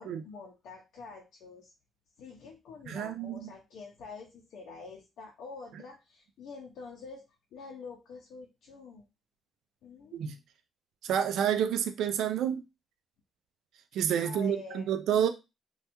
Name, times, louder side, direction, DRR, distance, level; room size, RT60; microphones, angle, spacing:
voice 1, 0.0-1.7 2.2-7.2 7.5-9.0 9.8-10.2 14.2-14.9, left 4 dB, 75° left, 0.6 m, -46 dB
voice 2, 2.9-3.5 10.1-10.4 11.0-12.6 13.9-15.3, right 9 dB, 80° right, 0.3 m, -29 dB
3.2 x 2.3 x 2.9 m
cardioid pair, 165°, 0 cm